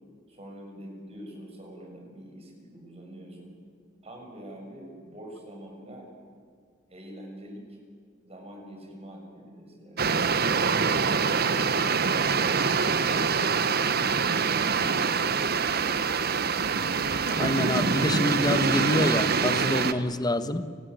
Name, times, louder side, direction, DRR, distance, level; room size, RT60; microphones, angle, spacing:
voice 1, 0.3-3.5 4.0-6.1 6.9-7.8 8.2-10.2, right 1 dB, 35° right, 2 dB, 6.4 m, -45 dB
sound 1, 10.0-19.9, right 5 dB, 55° right, 1.2 m, -25 dB
voice 2, 17.3-20.7, left 1 dB, 20° left, 11 dB, 1.3 m, -26 dB
30.0 x 19.5 x 9.4 m, 2.1 s
head